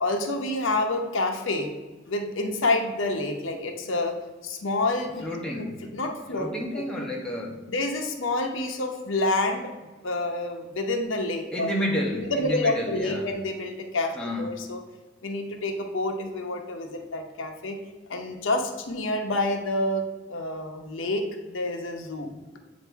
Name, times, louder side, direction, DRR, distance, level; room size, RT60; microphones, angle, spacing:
voice 1, 0.0-1.7 2.1-4.1 4.4-5.3 5.6-5.7 5.9-6.5 6.7-6.8 7.7-9.7 10.0-11.8 12.1-14.8 15.2-17.8 18.1-20.0 20.3-22.3, left 2 dB, 80° left, 4 dB, 0.8 m, -28 dB
voice 2, 5.2-5.8 6.3-7.6 11.5-13.3 14.1-14.6, equal, 5° left, -2 dB, 0.8 m, -30 dB
7.9 x 2.7 x 4.5 m, 1.2 s
head